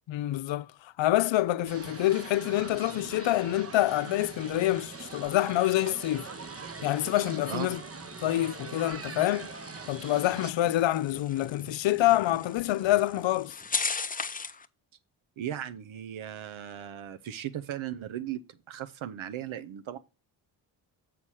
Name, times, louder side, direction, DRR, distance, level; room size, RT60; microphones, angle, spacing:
voice 1, 0.1-6.3 6.8-7.8 8.2-9.5 9.9-13.5, left 15 dB, 65° left, 0.6 m, -27 dB
sound 1, 1.7-10.5, right 4 dB, 30° right, 0.9 m, -42 dB
sound 2, 4.0-14.7, left 4 dB, 20° left, 0.6 m, -40 dB
voice 2, 15.4-18.4 18.7-20.0, right 11 dB, 70° right, 0.8 m, -37 dB
7.6 x 4.2 x 6.2 m
supercardioid pair, 45°, 49 cm